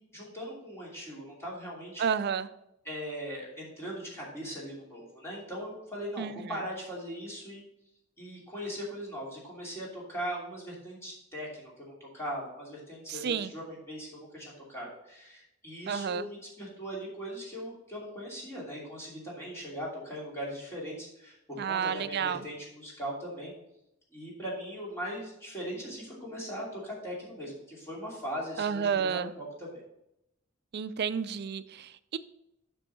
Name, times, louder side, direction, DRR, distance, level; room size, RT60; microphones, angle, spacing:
voice 1, 0.0-2.0 2.8-7.6 8.2-23.5 24.1-29.8, equal, 10° left, -5 dB, 2.8 m, -39 dB
voice 2, 2.0-2.5 6.2-6.4 13.1-13.5 15.9-16.3 21.6-22.4 28.6-29.3 30.7-32.2, right 7 dB, 50° right, 14 dB, 0.4 m, -31 dB
7.2 x 6.2 x 4.2 m, 0.82 s
head